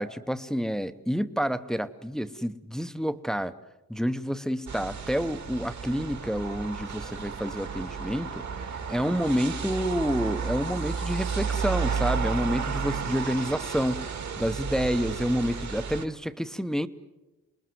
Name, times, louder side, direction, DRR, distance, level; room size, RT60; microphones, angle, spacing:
voice 1, 0.0-3.5 3.9-8.4 8.9-14.0 14.4-16.9, equal, ahead, 11 dB, 0.7 m, -29 dB
sound 1, 4.7-16.1, right 5 dB, 55° right, 1.8 m, -32 dB
27.5 x 21.0 x 7.7 m, 1.0 s
wide cardioid pair, 140°, 34 cm